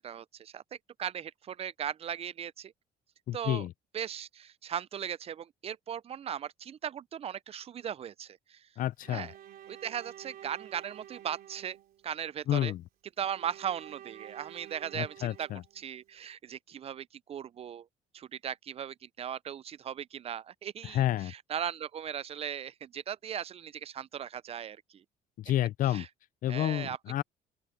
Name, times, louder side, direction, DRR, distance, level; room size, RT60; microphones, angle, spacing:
voice 1, 0.0-2.7 3.3-3.7 3.9-8.7 9.1-9.3 9.7-11.8 12.0-12.7 13.2-15.5 15.8-17.9 18.1-25.0 25.9-26.1 26.5-27.0, right 9 dB, 35° right, 0.5 m, -38 dB
voice 2, 3.3-3.7 8.8-9.3 12.5-12.8 14.9-15.6 20.8-21.3 25.4-26.1 26.4-27.2, left 13 dB, 55° left, 0.4 m, -30 dB
Bowed string instrument, 9.0-12.2 13.2-16.1, right 11 dB, 60° right, 4.0 m, -50 dB
open air
cardioid pair, 110°, 17 cm